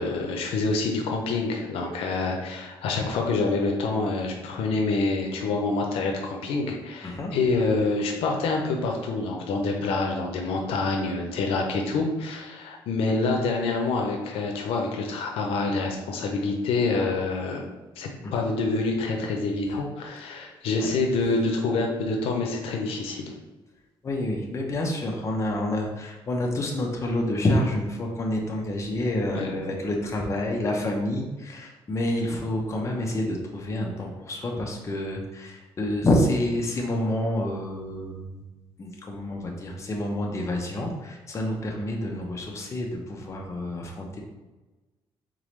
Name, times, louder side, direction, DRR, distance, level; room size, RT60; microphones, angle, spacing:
voice 1, 0.0-17.6 18.0-23.3 29.3-29.5, left 3 dB, 85° left, 1 dB, 0.7 m, -27 dB
voice 2, 24.0-38.4 38.8-44.2, left 1 dB, 30° left, 0 dB, 0.8 m, -28 dB
3.9 x 3.7 x 3.2 m, 1.1 s
cardioid pair, 115°, 10 cm